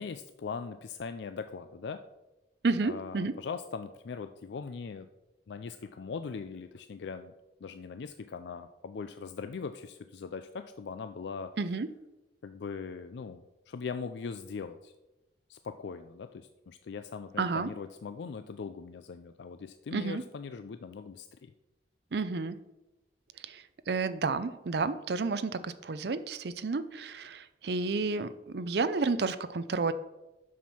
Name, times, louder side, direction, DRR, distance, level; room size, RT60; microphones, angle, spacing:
voice 1, 0.0-2.0 2.8-5.1 5.5-7.3 7.6-11.5 12.4-14.9 15.5-21.5, left 5 dB, 70° left, 9 dB, 0.4 m, -40 dB
voice 2, 2.6-3.3 11.6-11.9 17.4-17.7 19.9-20.2 22.1-22.6 23.4-29.9, right 4 dB, 60° right, 12 dB, 0.5 m, -31 dB
7.4 x 6.1 x 5.6 m, 1.0 s
head